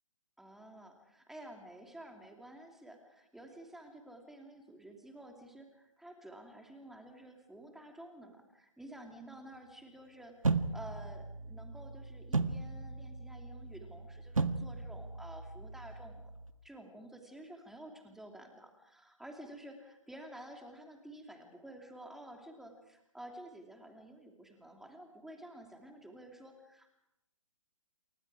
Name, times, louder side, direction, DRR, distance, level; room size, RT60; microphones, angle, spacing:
voice 1, 0.4-16.3 16.6-26.9, right 1 dB, ahead, 3 dB, 2.9 m, -51 dB
sound 1, 10.4-16.5, right 3 dB, 75° right, 1.7 m, -36 dB
29.5 x 27.5 x 4.9 m, 0.86 s
figure-of-eight pair, 130°, 17 cm